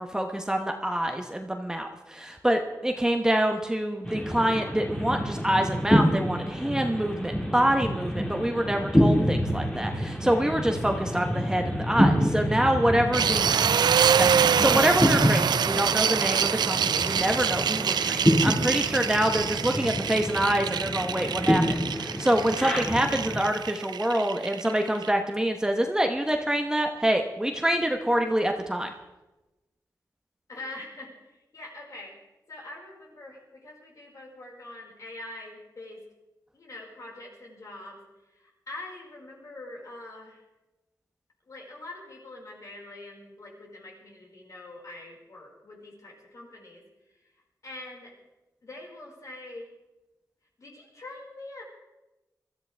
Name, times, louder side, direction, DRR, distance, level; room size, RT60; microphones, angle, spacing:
voice 1, 0.0-13.5 14.1-28.9, right 1 dB, 10° right, 4 dB, 1.0 m, -26 dB
sound 1, 4.0-23.4, equal, 15° left, 2.3 m, -27 dB
voice 2, 12.7-13.9 30.5-32.1 32.5-36.0 36.5-38.0 38.3-40.4 41.5-46.8 47.6-48.1 48.6-49.7 50.6-51.6, left 2 dB, 55° left, -2 dB, 5.0 m, -44 dB
sound 2, 13.1-25.1, right 8 dB, 90° right, 0.4 m, -26 dB
22.5 x 14.0 x 3.4 m, 1.0 s
wide cardioid pair, 100°, 7 cm